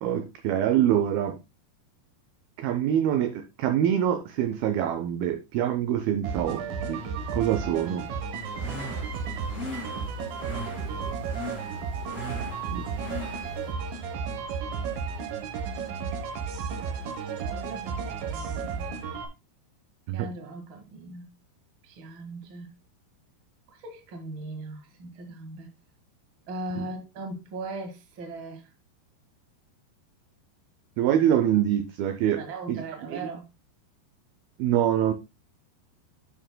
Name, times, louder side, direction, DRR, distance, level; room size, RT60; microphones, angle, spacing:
voice 1, 0.0-1.4 2.6-7.0 7.3-8.1 12.7-12.9 20.1-20.3 26.8-26.9 31.0-32.4 32.7-32.8 34.6-35.1, right 10 dB, 80° right, 2.2 m, -25 dB
sound 1, 6.2-19.3, right 5 dB, 65° right, 2.7 m, -33 dB
sound 2, 8.3-13.7, left 1 dB, 25° left, 1.8 m, -39 dB
voice 2, 16.6-17.1 17.4-18.9 20.1-21.3 21.8-22.7 23.7-25.7 26.5-28.7 32.3-33.4, right 2 dB, 45° right, 1.6 m, -40 dB
11.0 x 6.3 x 2.2 m
omnidirectional pair, 5.0 m